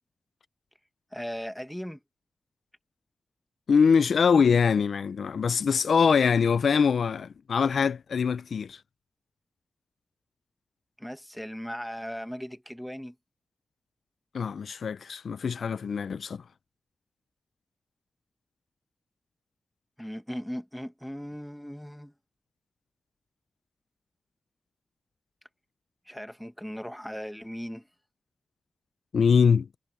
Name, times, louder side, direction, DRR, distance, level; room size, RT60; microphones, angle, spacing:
voice 1, 1.1-2.0 11.0-13.1 20.0-22.1 26.1-27.9, equal, ahead, 1.2 m, -38 dB
voice 2, 3.7-8.8 14.3-16.4 29.1-29.7, left 6 dB, 75° left, 0.4 m, -23 dB
wide cardioid pair, 145°, 0 cm